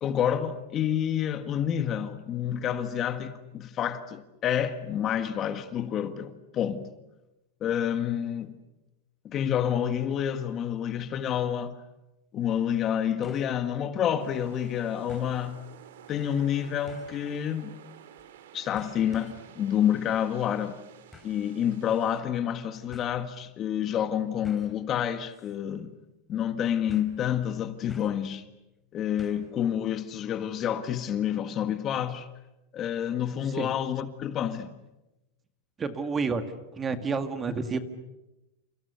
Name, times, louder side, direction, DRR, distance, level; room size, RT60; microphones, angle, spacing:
voice 1, 0.0-6.9 7.6-8.6 9.2-11.8 12.3-15.6 16.1-17.8 18.5-20.8 21.2-25.9 26.3-28.5 28.9-32.3 32.7-34.7, left 9 dB, 30° left, 1.6 m, -28 dB
sound 1, 13.2-13.6 14.0-14.1 15.1-15.4 16.9-17.2 18.2-18.4 18.8-19.5 21.1-21.4 22.4-22.5 22.9-23.1 24.4-24.8 25.3-25.6 25.8-25.9 26.9-27.2 27.9-28.3 29.2-29.5 29.8-29.9, left 3 dB, 5° left, 3.6 m, -49 dB
sound 2, 14.2-22.2, right 9 dB, 80° right, 2.7 m, -51 dB
voice 2, 35.8-36.4 36.7-37.8, right 4 dB, 20° right, 2.0 m, -29 dB
29.0 x 28.5 x 7.0 m
supercardioid pair, 150°, 0 cm